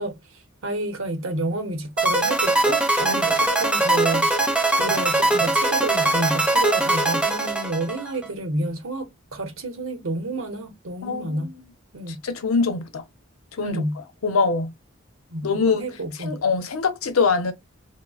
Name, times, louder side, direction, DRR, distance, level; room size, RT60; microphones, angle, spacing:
voice 1, 0.0-4.5 4.8-11.5 11.9-12.2 13.6-14.0 15.3-16.4, right 2 dB, 75° right, 0.7 m, -29 dB
sound 1, 2.0-8.3, right 2 dB, 5° right, 0.4 m, -21 dB
voice 2, 11.0-11.5 12.1-13.0 13.6-13.7 14.2-14.7 15.4-15.8 16.2-17.5, left 4 dB, 90° left, 0.6 m, -23 dB
3.0 x 2.0 x 2.3 m
head